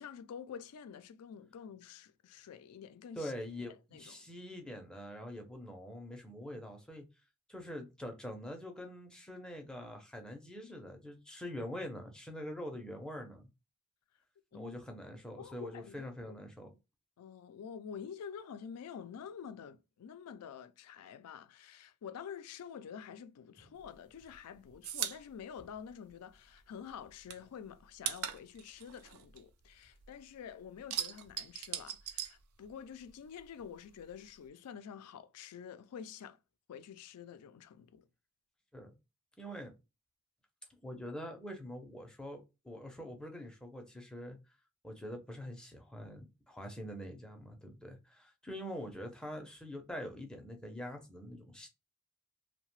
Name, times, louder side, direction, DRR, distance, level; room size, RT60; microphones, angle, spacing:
voice 1, 0.0-3.3 3.7-4.2 14.5-14.8 15.4-16.4 17.2-36.4 36.7-38.0, left 7 dB, 90° left, 0.4 m, -48 dB
voice 2, 3.2-7.1 7.5-13.5 14.5-16.7 38.7-38.9 39.4-39.7 40.8-44.4 44.8-51.7, equal, 5° left, 0.5 m, -44 dB
sound 1, 23.8-26.6 26.9-30.2 30.5-33.1 33.4-34.5, right 9 dB, 70° right, 0.4 m, -41 dB
2.7 x 2.1 x 3.0 m
head